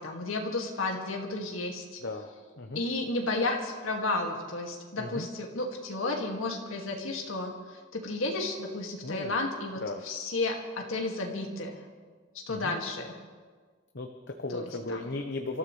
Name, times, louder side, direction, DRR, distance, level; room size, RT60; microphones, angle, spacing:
voice 1, 0.0-2.0 2.8-11.8 12.5-13.2 14.5-15.1, left 2 dB, 90° left, 1 dB, 2.2 m, -32 dB
voice 2, 5.0-5.3 9.0-9.3 9.8-10.0 12.5-12.7 13.9-15.6, left 2 dB, 55° left, 4 dB, 0.9 m, -36 dB
28.0 x 14.0 x 3.3 m, 1.5 s
head